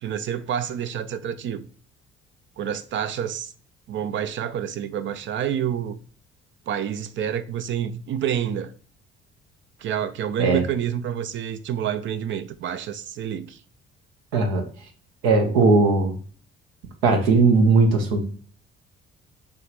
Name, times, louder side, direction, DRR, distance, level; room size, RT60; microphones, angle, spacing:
voice 1, 0.0-1.7 2.6-3.5 3.9-6.0 6.7-8.7 9.8-13.6, right 9 dB, 40° right, 0.4 m, -28 dB
voice 2, 14.3-14.6 15.2-16.2 17.0-18.2, right 3 dB, 65° right, 0.8 m, -18 dB
4.4 x 3.1 x 3.3 m
figure-of-eight pair, 45°, 32 cm